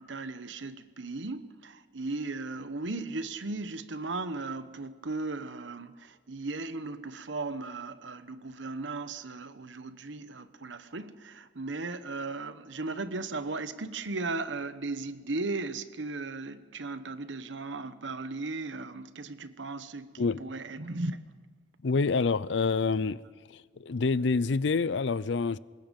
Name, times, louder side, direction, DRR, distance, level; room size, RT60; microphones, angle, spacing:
voice 1, 0.0-21.2, right 3 dB, 75° right, 1.0 m, -36 dB
voice 2, 21.8-23.2 23.5-25.6, left 4 dB, 70° left, 0.5 m, -27 dB
25.0 x 21.0 x 5.3 m
head